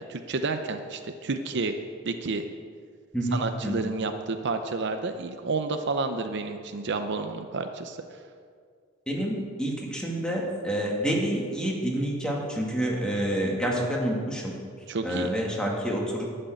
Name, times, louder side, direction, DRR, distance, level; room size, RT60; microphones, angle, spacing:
voice 1, 0.0-1.7 2.0-2.4 3.3-8.0 14.9-15.3, right 3 dB, 60° right, 7 dB, 0.7 m, -30 dB
voice 2, 3.1-3.7 9.1-14.5 15.0-16.3, equal, 5° left, -2 dB, 2.1 m, -28 dB
11.5 x 6.7 x 9.2 m, 2.1 s
head